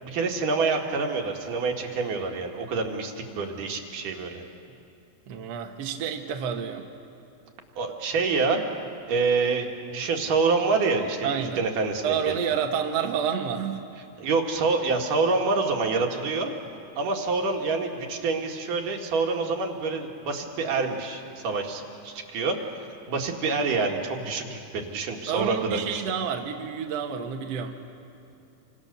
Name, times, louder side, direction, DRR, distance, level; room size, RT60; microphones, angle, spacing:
voice 1, 0.0-4.4 7.8-8.6 9.1-12.3 14.2-16.5 17.0-22.6 23.1-26.0, right 4 dB, 75° right, 2 dB, 3.3 m, -27 dB
voice 2, 5.3-6.8 11.2-11.6 12.0-13.8 25.3-27.8, right 7 dB, 60° right, 3 dB, 2.1 m, -29 dB
27.5 x 25.5 x 6.8 m, 2.8 s
omnidirectional pair, 3.8 m